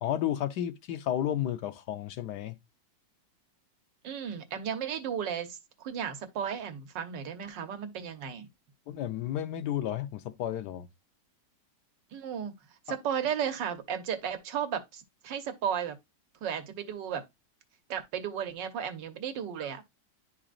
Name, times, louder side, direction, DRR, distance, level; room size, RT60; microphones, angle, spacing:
voice 1, 0.0-2.6 8.9-10.9 12.9-13.0, left 11 dB, 75° left, 1.2 m, -32 dB
voice 2, 4.0-8.5 12.1-12.5 12.9-16.0 16.4-17.2 17.9-19.8, right 8 dB, 85° right, 1.6 m, -34 dB
11.0 x 3.9 x 2.4 m
omnidirectional pair, 1.9 m